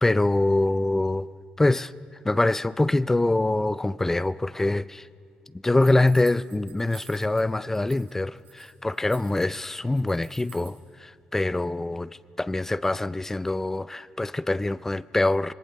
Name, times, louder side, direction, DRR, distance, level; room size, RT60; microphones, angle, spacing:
voice 1, 0.0-1.3 1.6-1.9 2.2-5.1 5.6-12.1 12.4-15.5, left 2 dB, 15° left, 0.5 m, -24 dB
sound 1, 5.8-7.4 7.7-8.1 8.4-10.8, right 9 dB, 80° right, 6.8 m, -50 dB
25.5 x 21.5 x 6.7 m
cardioid pair, 105°, 3 cm